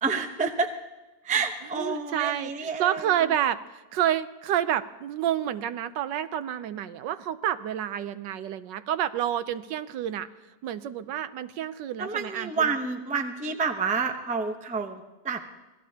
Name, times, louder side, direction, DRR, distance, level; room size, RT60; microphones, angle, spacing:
voice 1, 0.0-0.7 1.2-3.1 12.0-15.5, right 5 dB, 10° right, 5 dB, 0.4 m, -29 dB
voice 2, 1.7-10.3 10.6-12.7, right 11 dB, 85° right, 13 dB, 1.4 m, -29 dB
26.0 x 18.5 x 2.9 m, 1.2 s
omnidirectional pair, 1.9 m